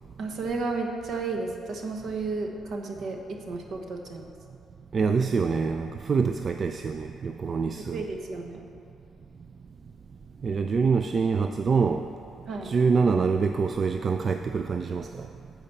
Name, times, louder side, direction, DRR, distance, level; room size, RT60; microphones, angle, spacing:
voice 1, 0.2-4.3 7.9-8.7 10.4-10.6 12.5-12.7, right 3 dB, 65° right, 3 dB, 1.0 m, -33 dB
voice 2, 4.9-8.0 10.4-12.1 12.6-15.3, right 5 dB, 45° right, 7 dB, 0.3 m, -25 dB
8.7 x 4.9 x 7.0 m, 2.8 s
cardioid pair, 90°, 0 cm